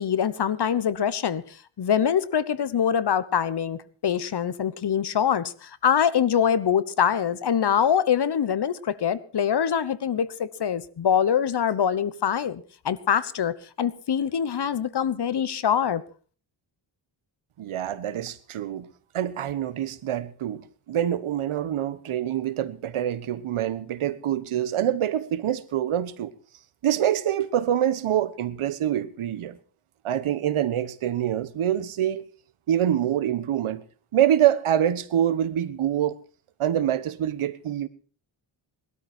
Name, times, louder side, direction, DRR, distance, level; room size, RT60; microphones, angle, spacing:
voice 1, 0.0-1.4 1.8-16.0, left 8 dB, 55° left, 1.1 m, -24 dB
voice 2, 17.6-18.9 19.1-26.3 26.8-29.6 30.0-32.2 32.7-33.8 34.1-36.2 36.6-37.9, right 11 dB, 90° right, 1.3 m, -25 dB
20.0 x 13.0 x 4.5 m
cardioid pair, 90°, 48 cm